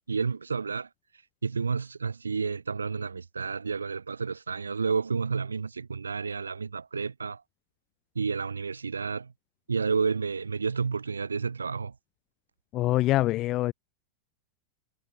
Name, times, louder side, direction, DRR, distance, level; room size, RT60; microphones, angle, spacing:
voice 1, 0.1-0.9 1.4-7.4 8.1-9.3 9.7-11.9, right 5 dB, 75° right, 2.6 m, -30 dB
voice 2, 12.7-13.7, left 16 dB, 35° left, 6.6 m, -24 dB
figure-of-eight pair, 90°, 0 cm